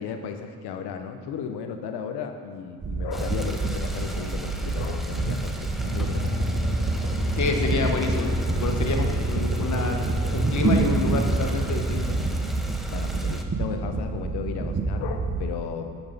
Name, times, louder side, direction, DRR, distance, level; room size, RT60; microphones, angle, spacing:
voice 1, 0.0-6.4 12.9-15.9, left 7 dB, 85° left, 6 dB, 0.8 m, -34 dB
sound 1, 2.8-15.4, right 3 dB, 30° right, 0.9 m, -28 dB
sound 2, 3.1-13.4, equal, ahead, 0.7 m, -37 dB
sound 3, 5.8-12.6, equal, 50° right, 1.4 m, -29 dB
voice 2, 7.3-10.0 10.3-12.0, left 4 dB, 50° left, 3 dB, 1.3 m, -28 dB
8.9 x 6.2 x 5.2 m, 2.2 s
cardioid pair, 70°, 38 cm